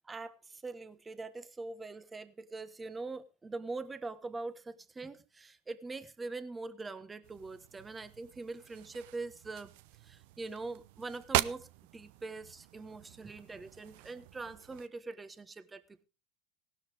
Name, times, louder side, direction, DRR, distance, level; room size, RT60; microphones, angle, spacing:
voice 1, 0.0-9.7 10.0-11.7 11.9-16.0, right 3 dB, 20° right, 12 dB, 1.4 m, -43 dB
sound 1, 7.2-14.9, right 16 dB, 70° right, 0.6 m, -40 dB
17.0 x 12.5 x 3.5 m, 0.33 s
hypercardioid pair, 90°, 0 cm